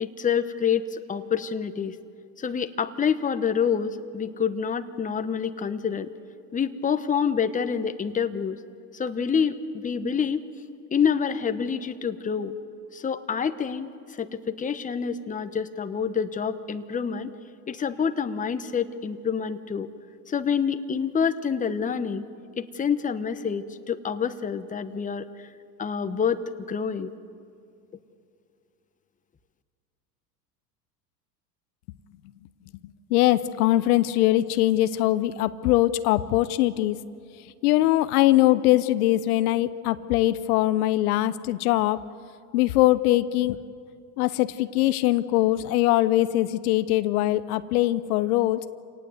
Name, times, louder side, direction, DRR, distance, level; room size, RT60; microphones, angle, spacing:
voice 1, 0.0-2.0 2.4-6.1 6.5-8.6 8.9-10.4 10.9-12.5 12.9-13.9 14.2-17.3 17.7-19.9 20.3-22.3 22.6-25.5 25.8-26.4 26.7-27.1, left 7 dB, 15° left, 10 dB, 1.1 m, -27 dB
voice 2, 33.1-37.0 37.6-42.0 42.5-43.6 44.2-48.6, left 15 dB, 70° left, 13 dB, 0.9 m, -22 dB
27.5 x 18.5 x 7.9 m, 2.4 s
hypercardioid pair, 95°, 47 cm